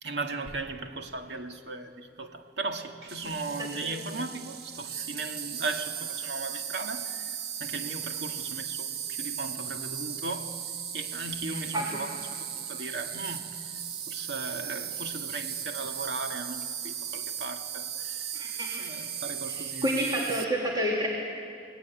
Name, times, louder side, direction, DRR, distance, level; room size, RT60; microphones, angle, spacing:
voice 1, 0.0-10.6 10.9-13.6 14.1-19.9, right 3 dB, 85° right, 2.1 m, -37 dB
Insect, 3.1-20.4, right 9 dB, 65° right, 1.2 m, -37 dB
voice 2, 3.6-3.9 11.5-12.0 18.3-18.8 19.5-21.1, right 1 dB, 25° right, 2.9 m, -30 dB
29.5 x 20.0 x 9.5 m
head